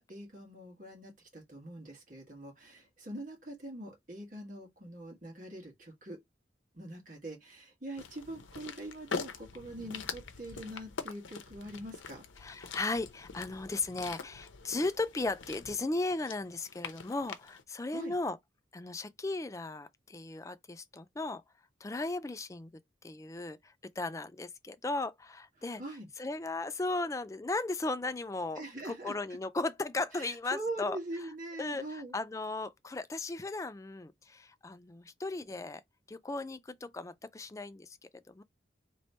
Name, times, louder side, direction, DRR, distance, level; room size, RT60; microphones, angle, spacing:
voice 1, 0.0-6.2 6.8-12.3 17.9-18.1 25.8-26.1 28.6-29.2 30.1-32.1, right 1 dB, 45° right, 1.7 m, -43 dB
sound 1, 8.0-17.6, left 5 dB, 85° left, 0.7 m, -44 dB
voice 2, 12.4-18.4 18.7-21.4 21.8-22.7 23.0-25.8 26.2-31.3 31.6-35.8 36.1-38.0 38.3-38.4, left 2 dB, 15° left, 0.3 m, -36 dB
3.2 x 3.1 x 4.2 m
head